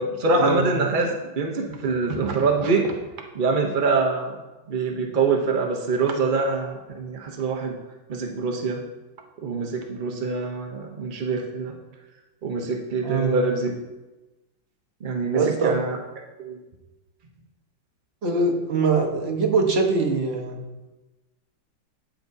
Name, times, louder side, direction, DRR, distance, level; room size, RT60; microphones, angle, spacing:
voice 1, 0.0-2.9 3.3-4.4 4.7-7.8 8.1-8.8 9.4-11.8 12.4-13.7 15.0-16.0 16.4-16.6, right 4 dB, 85° right, 1 dB, 0.4 m, -24 dB
voice 2, 13.0-13.4 15.3-15.8 18.2-20.6, right 4 dB, 40° right, 1 dB, 1.1 m, -23 dB
15.0 x 6.0 x 2.7 m, 1.1 s
omnidirectional pair, 2.1 m